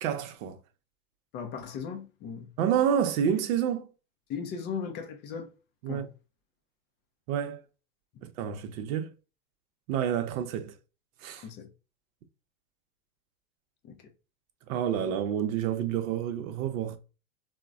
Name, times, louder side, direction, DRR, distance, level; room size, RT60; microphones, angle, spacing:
voice 1, 0.0-0.6 2.6-3.9 5.8-6.1 7.3-7.6 8.2-9.1 9.9-10.7 11.2-11.4 14.7-17.0, right 9 dB, 60° right, 0.7 m, -29 dB
voice 2, 1.3-2.5 4.3-5.5 5.9-6.1 11.4-11.7 13.9-14.0, left 6 dB, 25° left, 0.4 m, -37 dB
3.8 x 2.1 x 2.3 m
hypercardioid pair, 110°, 46 cm